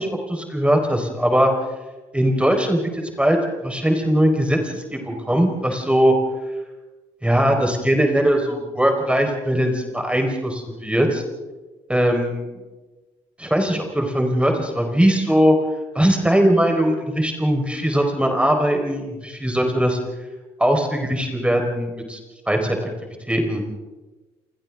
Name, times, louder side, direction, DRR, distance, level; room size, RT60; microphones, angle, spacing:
voice 1, 0.0-1.5 2.1-6.1 7.2-11.2 11.9-12.5 13.4-15.6 15.9-20.0 20.6-22.2 22.5-22.8 23.3-23.6, equal, 10° right, 3 dB, 4.5 m, -20 dB
29.0 x 28.5 x 3.7 m, 1.2 s
hypercardioid pair, 45°, 14 cm